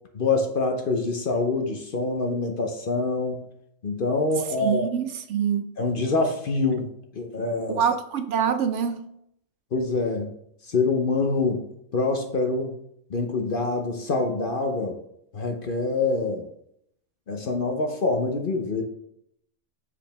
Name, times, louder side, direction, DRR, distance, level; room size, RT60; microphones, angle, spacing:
voice 1, 0.1-3.4 3.8-4.9 5.8-7.8 9.7-10.3 10.6-11.6 11.9-12.7 13.1-15.0 15.3-16.5 17.3-18.8, left 3 dB, 50° left, 0.8 m, -25 dB
voice 2, 4.6-5.7 7.7-9.1, right 7 dB, 70° right, 0.9 m, -25 dB
7.1 x 4.9 x 3.4 m
omnidirectional pair, 1.4 m